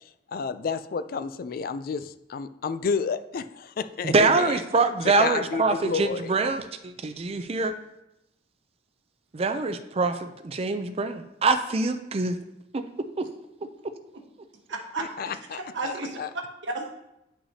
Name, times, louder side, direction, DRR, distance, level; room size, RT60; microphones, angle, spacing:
voice 1, 0.3-4.5 5.2-6.2 15.0-16.3, left 5 dB, 50° left, 12 dB, 0.4 m, -31 dB
voice 2, 4.0-7.7 9.3-12.4 12.7-12.8 13.2-13.3, right 3 dB, 35° right, 8 dB, 0.4 m, -24 dB
voice 3, 14.7-16.9, right 3 dB, 90° right, 2 dB, 1.2 m, -34 dB
9.7 x 5.7 x 2.8 m, 0.87 s
head